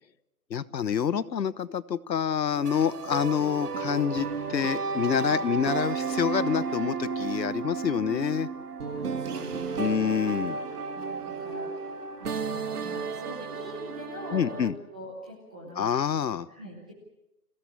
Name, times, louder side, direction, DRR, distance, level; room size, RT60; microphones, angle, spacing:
voice 1, 0.5-8.5 9.8-10.6 14.3-14.8 15.8-16.5, left 8 dB, 85° left, 17 dB, 1.2 m, -27 dB
sound 1, 2.5-14.7, right 5 dB, 65° right, 2.3 m, -33 dB
voice 2, 8.8-10.0 10.8-15.9 16.5-16.9, equal, 5° right, -2 dB, 0.8 m, -43 dB
28.0 x 17.0 x 8.5 m, 0.93 s
hypercardioid pair, 170°, 49 cm